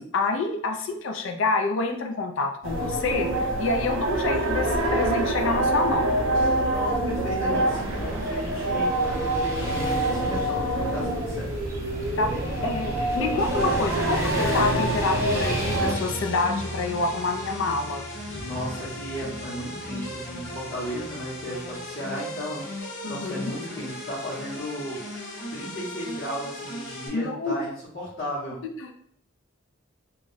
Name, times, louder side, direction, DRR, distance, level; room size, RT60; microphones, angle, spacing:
voice 1, 0.0-6.1 12.2-12.3 12.6-18.0 23.0-23.3 27.1-27.5 28.8-28.9, left 3 dB, 65° left, 4 dB, 0.4 m, -27 dB
sound 1, 2.6-15.9, right 1 dB, 65° right, 0.5 m, -26 dB
voice 2, 6.7-11.5 12.1-12.5 18.3-22.7 23.1-25.0 25.5-28.6, equal, 45° left, -10 dB, 0.9 m, -35 dB
Motorcycle / Traffic noise roadway noise, 7.6-21.7, equal, 15° right, 0.7 m, -35 dB
sound 2, 13.4-27.1, left 1 dB, 90° left, 1.0 m, -37 dB
2.3 x 2.0 x 3.8 m, 0.67 s
head